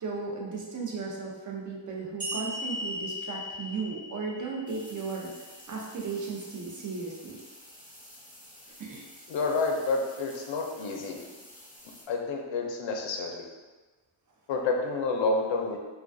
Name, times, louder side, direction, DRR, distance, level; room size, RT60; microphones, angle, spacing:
voice 1, 0.0-7.4 8.8-9.1, right 4 dB, 40° right, -2 dB, 0.5 m, -36 dB
sound 1, 2.2-5.6, equal, 15° right, 1.0 m, -38 dB
sound 2, 4.7-12.0, left 1 dB, 20° left, 0.6 m, -51 dB
voice 2, 9.3-11.2 12.1-13.4 14.5-15.8, left 3 dB, 70° left, 2 dB, 0.5 m, -29 dB
2.3 x 2.2 x 2.5 m, 1.3 s
wide cardioid pair, 95°, 47 cm